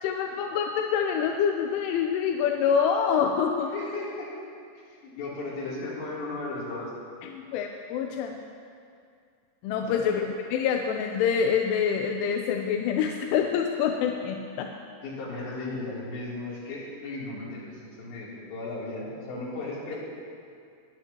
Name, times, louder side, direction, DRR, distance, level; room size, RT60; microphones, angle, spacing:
voice 1, 0.0-3.7 7.3-8.4 9.6-10.2 10.5-14.7, left 7 dB, 90° left, 3 dB, 3.3 m, -26 dB
voice 2, 3.7-4.3 4.9-6.9 9.8-10.1 15.0-20.0, left 2 dB, 65° left, -6 dB, 5.4 m, -36 dB
20.5 x 18.0 x 3.0 m, 2.3 s
omnidirectional pair, 5.4 m